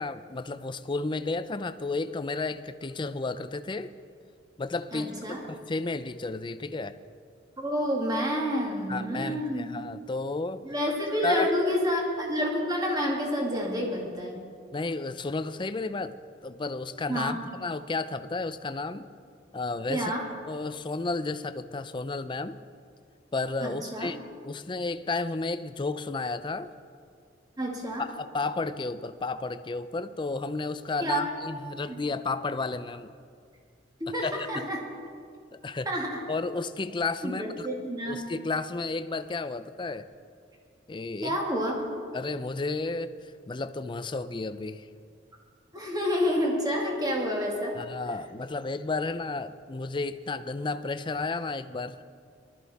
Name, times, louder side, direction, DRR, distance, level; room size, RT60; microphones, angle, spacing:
voice 1, 0.0-3.9 4.6-7.0 8.9-10.6 11.2-11.5 14.7-16.2 16.4-19.1 19.5-20.1 20.5-22.6 23.3-26.7 28.0-33.1 34.1-34.7 35.6-35.9 36.3-37.7 38.1-40.1 40.9-41.4 42.1-44.9 47.8-52.0, left 3 dB, 25° left, 11 dB, 0.5 m, -32 dB
voice 2, 4.9-5.4 7.6-9.8 10.6-14.4 17.1-17.4 19.9-20.2 23.6-24.1 27.6-28.1 31.0-31.3 31.9-32.0 34.0-34.8 35.9-36.2 37.2-38.3 41.2-41.7 45.7-47.8, equal, 20° right, -1 dB, 2.2 m, -29 dB
19.5 x 13.0 x 4.2 m, 2.2 s
head